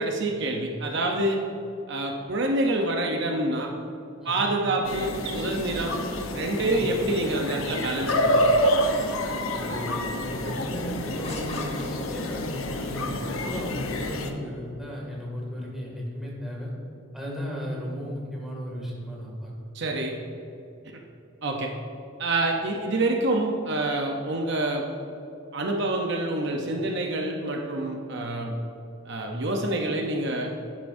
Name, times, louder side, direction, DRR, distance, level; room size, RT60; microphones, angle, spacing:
voice 1, 0.0-1.4 1.9-3.7 4.2-6.0 6.3-8.5 13.0-13.2 19.7-20.1 21.4-21.7 22.2-24.8 25.5-28.6 29.1-30.5, right 2 dB, 60° right, 2 dB, 0.8 m, -27 dB
voice 2, 4.2-4.5 6.6-6.9 9.5-16.7 17.1-19.5, equal, ahead, -4 dB, 2.2 m, -35 dB
sound 1, 4.8-14.3, equal, 85° left, 0.9 m, -28 dB
sound 2, 11.2-12.5, left 3 dB, 30° left, 1.3 m, -43 dB
11.5 x 10.5 x 2.7 m, 2.8 s
head